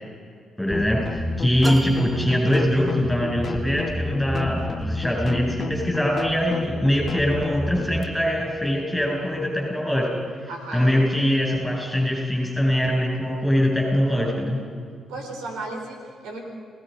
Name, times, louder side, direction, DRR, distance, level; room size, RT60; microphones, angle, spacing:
voice 1, 0.6-10.1 10.7-14.6, equal, 5° left, -1 dB, 7.3 m, -22 dB
sound 1, 0.7-8.0, left 3 dB, 50° left, 1.3 m, -30 dB
sound 2, 1.6-3.3, right 1 dB, 20° right, 1.9 m, -36 dB
voice 2, 10.5-11.0 15.1-16.4, right 2 dB, 90° right, 2 dB, 4.3 m, -34 dB
28.0 x 18.5 x 5.4 m, 2.2 s
supercardioid pair, 60°, 0 cm